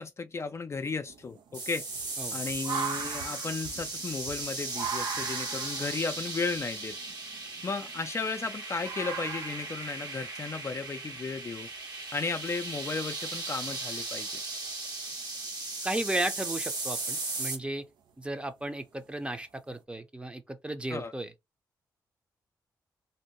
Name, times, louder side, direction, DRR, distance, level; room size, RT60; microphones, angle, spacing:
voice 1, 0.0-1.8 2.3-7.0 7.6-11.7 12.1-14.4 20.9-21.1, left 4 dB, 35° left, 0.4 m, -34 dB
sound 1, 1.1-8.4 8.8-9.8 11.1-11.2 12.5-12.6 15.2-15.5 15.9-16.3 16.9-17.5 18.1-18.2 19.2-19.3 19.7-19.8, right 7 dB, 80° right, 0.5 m, -40 dB
sound 2, 1.5-17.6, right 3 dB, 60° right, 1.1 m, -37 dB
voice 2, 15.8-17.9 18.2-21.3, right 1 dB, 15° right, 0.6 m, -34 dB
2.7 x 2.1 x 3.0 m
cardioid pair, 60°, 8 cm